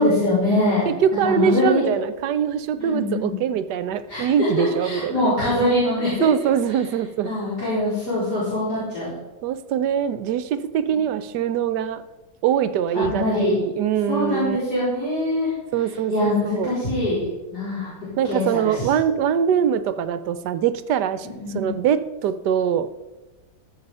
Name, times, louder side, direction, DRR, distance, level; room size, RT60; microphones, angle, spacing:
voice 1, 0.0-0.9 1.2-1.9 2.8-3.4 4.1-6.3 7.2-9.1 10.9-11.0 12.9-13.6 14.1-15.5 16.1-17.9 18.3-18.7 21.4-21.7, left 1 dB, 55° left, -11 dB, 4.8 m, -23 dB
voice 2, 0.9-5.3 6.2-7.3 9.4-12.0 12.4-14.6 15.7-16.7 18.2-21.3 21.5-22.9, right 8 dB, 70° right, 13 dB, 1.1 m, -23 dB
14.0 x 6.5 x 5.5 m, 1.1 s
omnidirectional pair, 2.0 m